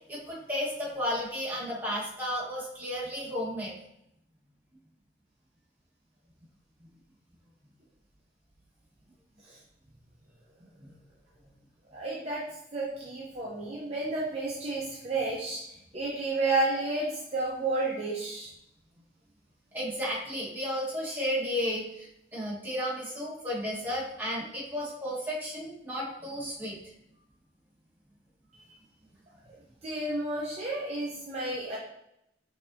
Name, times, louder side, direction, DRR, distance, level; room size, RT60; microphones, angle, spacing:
voice 1, 0.1-3.7 10.8-10.9 19.7-26.8, equal, 10° right, -8 dB, 1.4 m, -33 dB
voice 2, 11.9-12.4 12.7-15.6 15.9-18.5 29.8-31.8, right 2 dB, 35° right, -5 dB, 0.6 m, -31 dB
5.2 x 2.7 x 2.7 m, 0.78 s
head